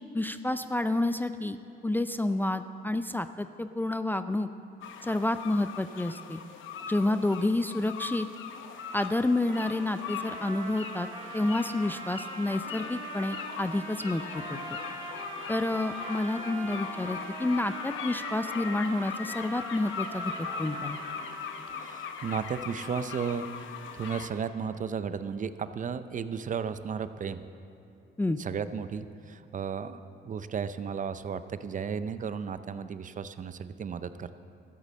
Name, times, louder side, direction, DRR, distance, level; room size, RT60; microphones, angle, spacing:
voice 1, 0.0-1.6 1.8-4.5 5.0-6.4 6.9-8.3 8.9-11.1 11.3-14.2 14.5-14.6 15.5-20.3 20.6-21.0 28.2-28.4, left 2 dB, 10° left, 10 dB, 0.4 m, -29 dB
sound 1, 4.8-24.3, left 6 dB, 80° left, 0.9 m, -40 dB
Trumpet, 9.5-21.9, right 1 dB, 25° right, 2.3 m, -42 dB
voice 2, 21.8-23.5 23.9-27.4 28.4-34.3, right 6 dB, 40° right, 12 dB, 0.5 m, -34 dB
12.5 x 8.4 x 7.3 m, 2.7 s
cardioid pair, 90°, 20 cm